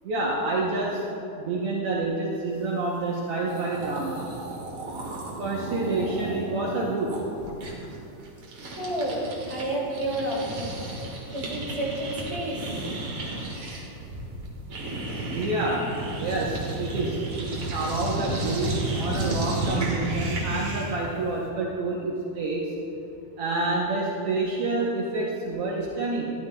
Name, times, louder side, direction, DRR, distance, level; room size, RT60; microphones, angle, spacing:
voice 1, 0.0-1.0 1.4-4.3 5.4-7.1 15.3-15.9 16.2-22.6 23.4-26.3, right 2 dB, 85° right, -4 dB, 1.3 m, -28 dB
sound 1, 3.2-3.3 3.4-9.6 9.9-21.0, right 2 dB, 50° right, 1.9 m, -33 dB
voice 2, 8.8-9.2 9.5-10.7 11.3-12.8, right 1 dB, 10° right, -6 dB, 2.1 m, -30 dB
13.5 x 12.5 x 2.3 m, 2.8 s
omnidirectional pair, 4.0 m